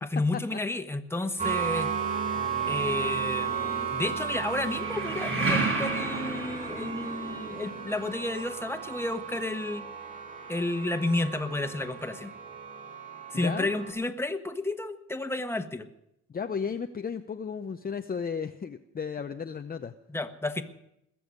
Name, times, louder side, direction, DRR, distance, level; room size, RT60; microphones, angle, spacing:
voice 1, 0.0-1.9 2.7-9.9 10.5-12.3 13.3-15.9 20.1-20.6, left 2 dB, 10° left, 7 dB, 1.4 m, -31 dB
sound 1, 1.4-13.9, right 7 dB, 25° right, 5.8 m, -34 dB
sound 2, 2.6-3.4 4.7-7.5, right 3 dB, 45° right, 3.5 m, -31 dB
voice 2, 13.3-13.8 16.3-19.9, left 6 dB, 30° left, 7 dB, 0.7 m, -34 dB
20.5 x 7.1 x 9.5 m, 0.82 s
cardioid pair, 90°, 30 cm